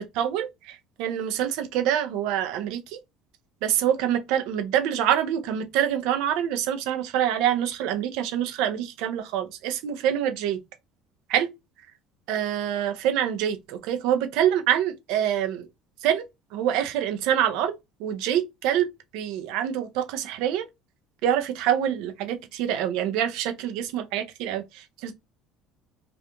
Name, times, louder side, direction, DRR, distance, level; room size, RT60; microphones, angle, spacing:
voice 1, 0.0-3.0 3.6-10.6 11.3-11.5 12.3-15.7 16.0-16.2 16.5-20.7 21.2-25.1, right 10 dB, 75° right, 0.5 m, -26 dB
2.4 x 2.2 x 2.7 m
supercardioid pair, 90°, 0 cm